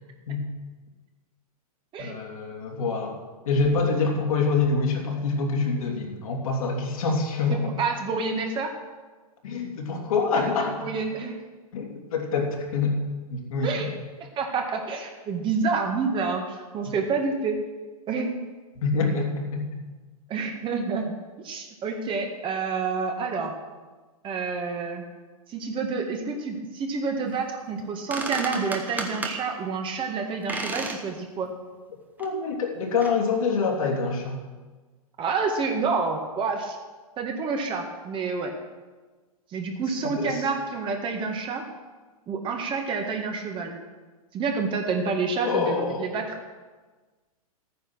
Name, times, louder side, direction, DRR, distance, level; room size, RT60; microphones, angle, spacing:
voice 1, 2.0-3.2 3.4-7.8 9.4-10.9 11.7-13.0 13.3-13.9 18.8-19.7 32.2-34.4 40.2-40.4 45.4-46.2, left 4 dB, 65° left, 0 dB, 3.1 m, -26 dB
voice 2, 7.5-8.7 10.8-11.4 13.6-13.9 14.4-17.6 18.1-18.3 20.3-23.5 24.2-25.1 25.5-31.5 35.2-36.8 37.2-38.5 39.5-41.6 42.3-43.8 44.3-46.4, right 4 dB, 25° right, 3 dB, 2.0 m, -28 dB
sound 1, 27.8-27.9 28.1-29.4 30.5-31.0 31.4-31.5 32.2-32.3 33.0-33.2, right 2 dB, 10° right, 1.4 m, -32 dB
13.0 x 9.6 x 6.3 m, 1.3 s
hypercardioid pair, 115°, 19 cm